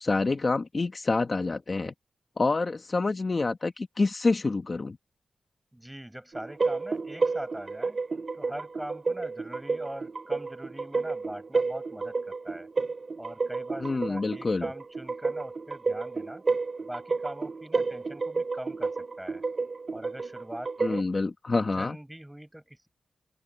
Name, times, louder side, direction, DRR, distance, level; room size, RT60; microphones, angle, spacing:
voice 1, 0.0-1.9 2.4-5.0 13.8-14.7 20.8-22.0, left 3 dB, 35° left, 1.1 m, -27 dB
voice 2, 5.7-8.0 8.3-12.7 13.2-16.4 16.8-19.4 19.9-21.1 21.5-22.9, right 1 dB, 5° right, 5.6 m, -42 dB
sound 1, 6.3-21.0, right 4 dB, 40° right, 3.3 m, -31 dB
open air
wide cardioid pair, 145°, 0 cm